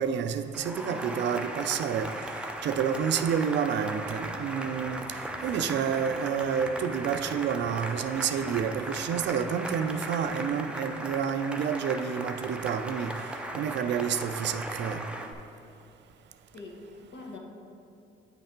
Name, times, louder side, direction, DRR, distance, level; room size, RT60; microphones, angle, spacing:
voice 1, 0.0-2.1 2.6-5.1 5.4-13.1 13.5-15.0, right 7 dB, 65° right, 9 dB, 0.4 m, -29 dB
Cheering / Applause, 0.5-15.3, right 1 dB, 5° right, 0.5 m, -37 dB
voice 2, 0.8-1.2 5.4-5.8 16.5-17.4, left 2 dB, 60° left, 0 dB, 1.1 m, -44 dB
Crowd, 4.0-10.3, left 1 dB, 35° left, 1.4 m, -52 dB
9.2 x 3.3 x 4.3 m, 2.5 s
cardioid pair, 90°, 20 cm